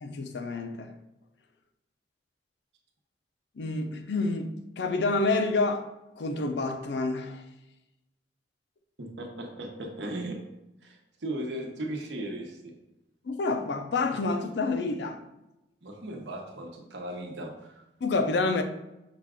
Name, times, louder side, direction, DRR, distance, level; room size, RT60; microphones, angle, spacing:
voice 1, 0.0-0.9 3.6-5.9 6.2-7.4 13.2-15.2 18.0-18.6, left 3 dB, 70° left, 0.5 m, -28 dB
voice 2, 9.0-10.4 10.8-12.8 15.8-17.8, right 1 dB, 80° right, 0.8 m, -37 dB
5.7 x 2.4 x 3.6 m
head